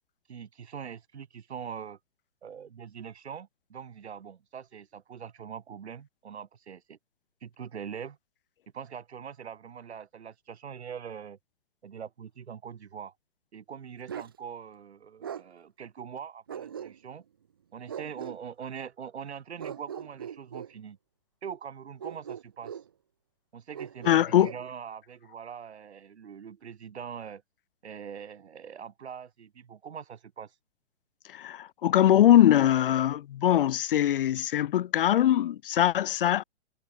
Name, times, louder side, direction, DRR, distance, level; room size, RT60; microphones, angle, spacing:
voice 1, 0.3-2.0 2.4-7.0 7.4-8.2 8.7-11.4 11.8-13.1 13.5-17.2 17.7-21.0 21.4-22.8 23.5-27.4 27.8-30.5, right 7 dB, 75° right, 6.3 m, -42 dB
Bark, 14.1-14.4 15.2-15.5 16.5-17.2 17.9-18.4 19.6-20.7 22.0-22.9 23.7-24.6, right 8 dB, 25° right, 0.3 m, -40 dB
voice 2, 24.0-24.5 31.3-36.4, left 11 dB, 55° left, 0.6 m, -22 dB
hypercardioid pair, 150°, 33 cm